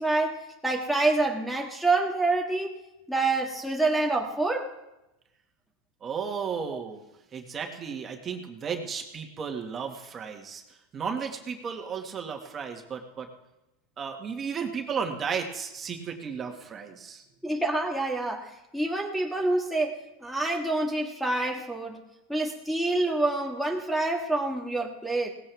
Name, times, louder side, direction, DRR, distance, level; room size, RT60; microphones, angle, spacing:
voice 1, 0.0-2.7 3.1-4.7 6.7-6.8 17.4-22.0 22.3-25.3, right 2 dB, ahead, 2 dB, 1.6 m, -27 dB
voice 2, 6.0-7.0 7.3-10.6 10.9-13.3 14.0-17.2, right 6 dB, 25° right, 3 dB, 1.9 m, -34 dB
18.0 x 15.5 x 3.5 m, 0.95 s
supercardioid pair, 135°, 0 cm